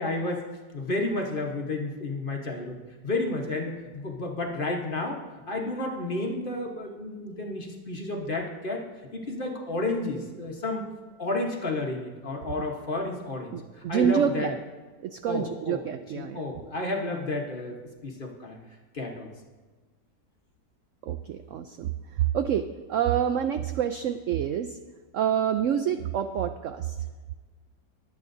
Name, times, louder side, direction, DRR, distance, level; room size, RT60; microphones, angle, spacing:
voice 1, 0.0-8.8 9.1-10.9 11.2-14.5 15.3-15.8 16.1-18.6 18.9-19.3, left 2 dB, 35° left, 1 dB, 1.1 m, -31 dB
voice 2, 13.5-14.6 15.0-16.4 21.0-24.8 25.1-27.0, right 9 dB, 75° right, 8 dB, 0.7 m, -27 dB
22.0 x 8.4 x 2.6 m, 1.4 s
omnidirectional pair, 1.8 m